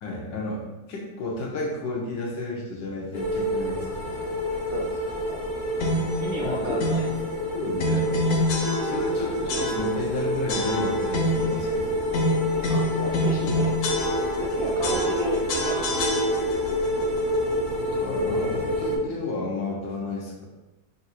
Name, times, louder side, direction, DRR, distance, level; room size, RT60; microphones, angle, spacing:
voice 1, 0.0-4.1 5.8-6.1 6.4-6.8 7.5-8.1 8.8-12.0 14.8-14.9 17.9-20.5, left 2 dB, 85° left, -2 dB, 1.6 m, -32 dB
sound 1, 3.1-19.0, equal, 30° left, 0.6 m, -28 dB
voice 2, 4.7-5.4 6.2-7.1 8.7-8.9 12.5-14.1 14.4-16.1 16.7-16.8, right 1 dB, 75° right, -3 dB, 0.8 m, -34 dB
sound 2, 5.8-6.2 6.8-7.2 7.8-9.2 9.5-10.1 10.5-11.6 12.1-14.5 14.8-16.7, left 1 dB, 65° left, 0.8 m, -26 dB
3.8 x 2.6 x 4.2 m, 1.1 s
omnidirectional pair, 2.0 m